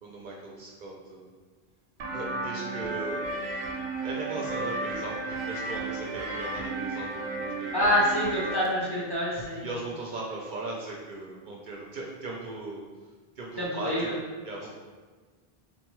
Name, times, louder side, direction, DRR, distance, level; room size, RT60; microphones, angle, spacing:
voice 1, 0.0-1.3 2.1-3.2 4.0-8.1 9.6-14.2 14.4-14.7, right 2 dB, 60° right, -2 dB, 0.6 m, -38 dB
sound 1, 2.0-8.7, right 2 dB, 90° right, 0.9 m, -33 dB
voice 2, 7.7-9.7 13.6-14.1, left 1 dB, 30° left, -7 dB, 0.5 m, -26 dB
3.9 x 2.2 x 3.0 m, 1.4 s
omnidirectional pair, 1.0 m